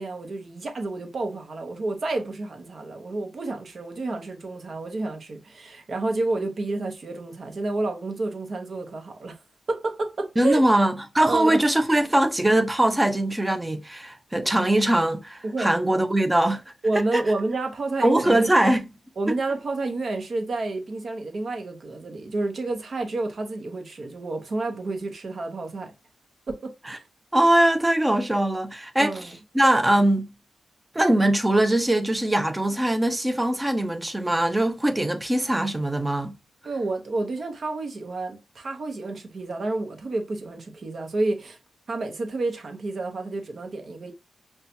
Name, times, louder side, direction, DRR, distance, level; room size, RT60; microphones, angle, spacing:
voice 1, 0.0-9.4 9.7-10.6 11.3-11.6 15.4-15.7 16.8-18.5 19.2-25.9 26.5-27.0 29.0-29.3 36.6-41.6 41.9-44.1, right 2 dB, 55° right, 1.0 m, -30 dB
voice 2, 10.4-16.6 16.9-17.2 18.0-18.8 19.3-19.4 26.9-27.0 27.3-29.3 29.5-30.3 30.9-36.3, right 1 dB, 15° right, 0.7 m, -21 dB
5.5 x 2.3 x 2.7 m
cardioid pair, 90°, 0 cm